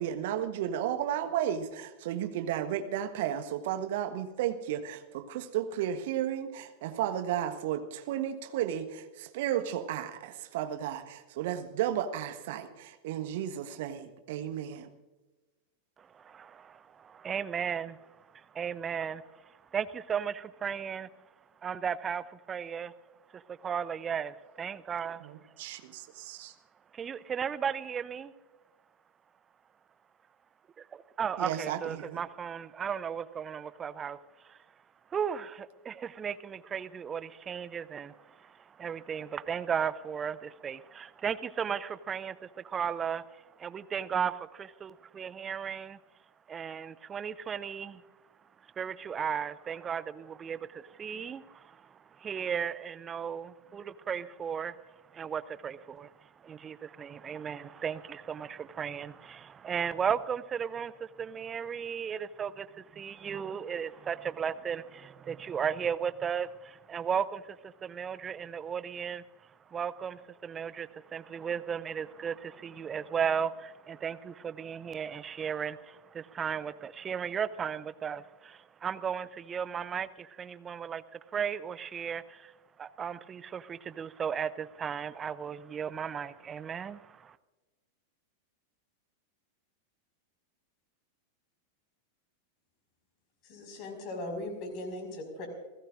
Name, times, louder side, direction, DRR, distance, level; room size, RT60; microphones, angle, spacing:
voice 1, 0.0-14.9 25.2-26.5 31.4-32.2, right 10 dB, 50° right, 8 dB, 1.3 m, -33 dB
voice 2, 16.0-21.1 21.6-22.9 23.3-25.7 26.9-28.3 30.8-34.7 35.1-46.0 46.5-48.0 48.6-87.4, right 7 dB, 20° right, 16 dB, 0.6 m, -36 dB
voice 3, 93.4-95.5, left 1 dB, 40° left, 4 dB, 5.4 m, -39 dB
29.0 x 17.0 x 2.6 m, 1.2 s
figure-of-eight pair, 90°, 0 cm